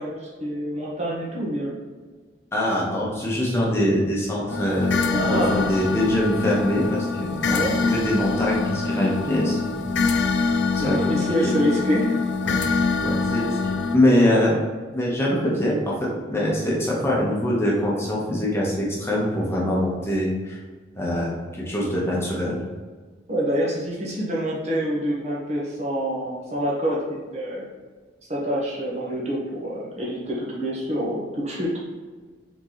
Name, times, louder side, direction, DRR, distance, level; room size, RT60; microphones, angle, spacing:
voice 1, 0.0-1.7 5.1-5.7 7.5-7.7 10.8-12.2 23.3-27.0 27.3-27.7 28.3-31.7, equal, 35° right, -5 dB, 1.2 m, -26 dB
voice 2, 2.5-5.0 5.3-9.9 10.3-11.1 11.4-11.5 12.4-14.6 14.9-16.0 16.3-20.6 21.0-22.6, left 1 dB, 15° left, -5 dB, 1.0 m, -23 dB
sound 1, 4.5-14.0, left 4 dB, 75° left, 0.5 m, -25 dB
4.4 x 3.9 x 3.0 m, 1.4 s
head